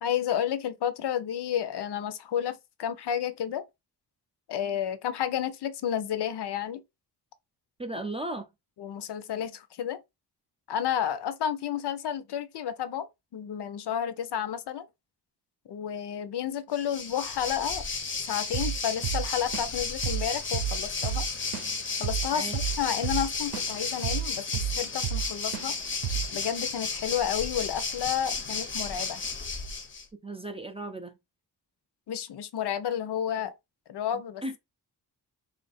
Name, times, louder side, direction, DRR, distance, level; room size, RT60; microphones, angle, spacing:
voice 1, 0.0-3.6 4.5-6.8 8.8-10.0 10.7-13.1 13.3-14.9 15.7-17.8 18.2-21.3 22.0-25.7 26.3-29.2 32.1-33.5 33.9-34.4, left 9 dB, 75° left, 0.6 m, -31 dB
voice 2, 7.8-8.5 22.3-22.5 30.1-31.2 34.1-34.6, right 1 dB, 15° right, 0.3 m, -36 dB
Waves surf, 16.7-30.0, left 4 dB, 30° left, 0.6 m, -33 dB
Drum kit / Drum, 18.5-18.8 19.0-19.8 20.0-20.3 20.5-23.7 24.0-25.3 25.5-25.7 26.0-26.4, right 10 dB, 70° right, 0.7 m, -31 dB
3.3 x 2.5 x 3.9 m
wide cardioid pair, 165°, 40 cm